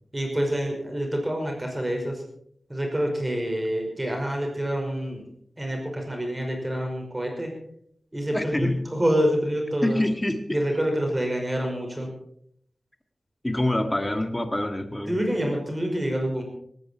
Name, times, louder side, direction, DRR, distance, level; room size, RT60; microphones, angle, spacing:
voice 1, 0.1-2.2 2.7-5.2 5.6-7.5 8.1-10.0 10.5-12.1 15.1-16.4, equal, 15° right, 1 dB, 5.4 m, -27 dB
voice 2, 8.3-8.9 9.8-10.6 13.4-15.2, left 1 dB, 15° left, 7 dB, 1.9 m, -26 dB
18.5 x 15.5 x 4.5 m, 0.68 s
wide cardioid pair, 100°, 0 cm